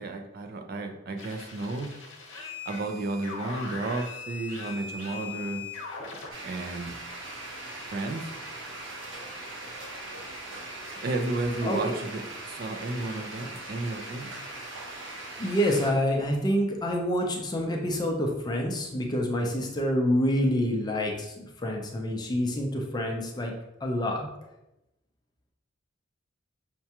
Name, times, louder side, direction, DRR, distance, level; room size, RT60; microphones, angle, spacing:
voice 1, 0.0-1.9 2.7-5.6 6.4-6.9 7.9-8.3 11.0-12.2 12.5-14.3, right 2 dB, 50° right, 5 dB, 0.4 m, -32 dB
sound 1, 1.2-6.3, left 4 dB, 85° left, 0.9 m, -40 dB
sound 2, 6.3-15.9, right 2 dB, 80° right, 0.8 m, -40 dB
voice 2, 11.6-11.9 15.4-23.5 23.8-24.3, equal, 20° left, 1 dB, 0.5 m, -27 dB
5.7 x 2.2 x 2.8 m, 0.90 s
head